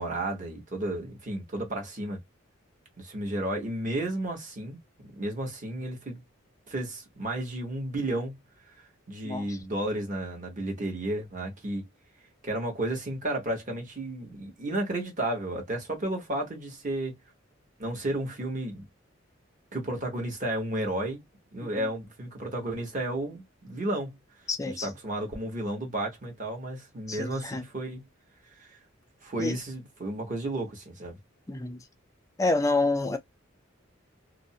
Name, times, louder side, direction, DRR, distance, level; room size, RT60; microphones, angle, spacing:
voice 1, 0.0-2.2 3.0-6.2 6.7-8.4 9.1-11.9 12.4-17.2 17.8-18.8 19.7-21.2 21.5-24.1 24.6-28.0 28.6-28.8 29.2-31.2, right 1 dB, 40° right, 1.0 m, -32 dB
voice 2, 9.2-9.6 21.6-21.9 24.5-24.9 27.1-27.6 29.4-29.5 31.5-31.8 32.4-33.2, left 2 dB, 15° left, 0.4 m, -28 dB
2.5 x 2.0 x 2.6 m
head